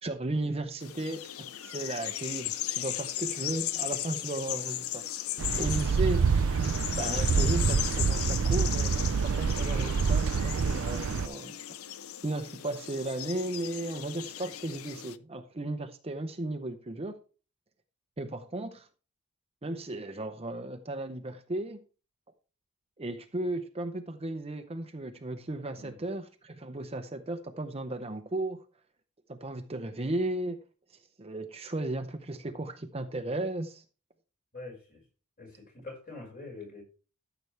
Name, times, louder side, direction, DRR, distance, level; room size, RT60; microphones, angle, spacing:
voice 1, 0.0-5.0 5.6-6.3 6.9-11.5 12.2-17.2 18.2-18.9 19.6-21.8 23.0-28.6 29.3-30.6 31.2-33.8, right 2 dB, 30° right, 0.8 m, -35 dB
sound 1, 0.8-15.2, left 12 dB, 75° left, 0.6 m, -37 dB
sound 2, 5.4-11.3, right 5 dB, 65° right, 0.5 m, -27 dB
voice 2, 34.5-35.0 35.4-36.8, left 3 dB, 40° left, 5.3 m, -44 dB
13.5 x 7.0 x 3.3 m
head